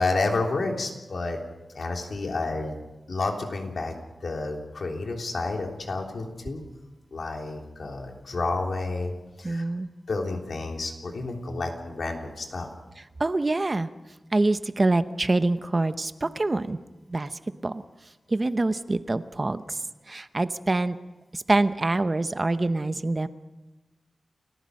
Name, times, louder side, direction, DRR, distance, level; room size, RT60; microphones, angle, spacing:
voice 1, 0.0-1.4 1.7-2.8 3.1-4.0 4.2-6.6 7.1-9.6 10.1-12.7, left 3 dB, 70° left, 2 dB, 3.4 m, -30 dB
voice 2, 9.4-9.9 13.2-13.9 14.3-16.8 17.1-17.3 17.6-17.8 18.3-19.8 20.1-21.0 21.3-23.3, right 2 dB, 30° right, 11 dB, 0.8 m, -25 dB
29.5 x 15.0 x 6.4 m, 1.1 s
wide cardioid pair, 110°, 0 cm